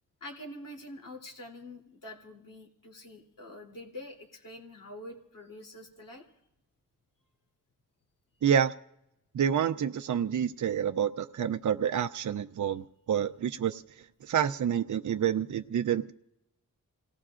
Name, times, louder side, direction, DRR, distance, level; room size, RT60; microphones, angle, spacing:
voice 1, 0.2-6.2, left 1 dB, 70° left, 3.2 m, -46 dB
voice 2, 8.4-8.7 9.3-13.8 14.2-16.1, right 8 dB, 60° right, 0.6 m, -28 dB
29.0 x 18.0 x 2.5 m
cardioid pair, 60°, 34 cm